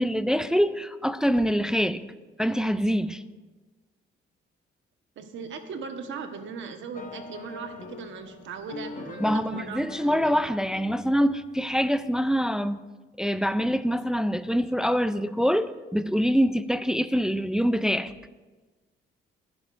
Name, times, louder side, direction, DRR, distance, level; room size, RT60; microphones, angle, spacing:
voice 1, 0.0-2.0 2.4-3.2 9.2-12.8 13.2-18.1, equal, 5° right, 11 dB, 0.5 m, -25 dB
Fireworks, 1.3-3.5, left 3 dB, 70° left, 3.1 m, -53 dB
voice 2, 5.2-10.4, right 5 dB, 70° right, 6 dB, 1.4 m, -38 dB
sound 1, 6.9-12.2, left 4 dB, 40° left, 1.2 m, -42 dB
20.5 x 11.5 x 2.6 m, 1.2 s
cardioid pair, 90°, 20 cm